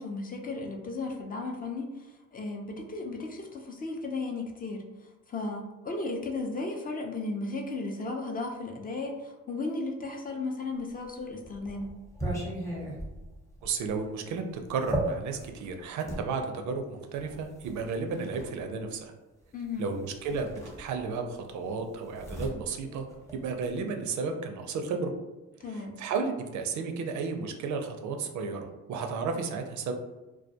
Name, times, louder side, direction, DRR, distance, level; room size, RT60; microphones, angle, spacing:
voice 1, 0.0-4.8 5.3-11.9 19.5-19.9 25.6-26.0, left 3 dB, 30° left, 1 dB, 0.4 m, -35 dB
sound 1, 10.9-16.3 17.2-18.5 19.7-19.9 20.2-21.3 21.6-23.8, right 1 dB, 10° left, 0.8 m, -37 dB
voice 2, 13.6-14.4 14.7-19.1 19.8-23.1 23.3-25.1 25.7-29.9, right 4 dB, 70° right, 5 dB, 0.4 m, -33 dB
2.2 x 2.2 x 2.6 m, 1.1 s
cardioid pair, 90°, 30 cm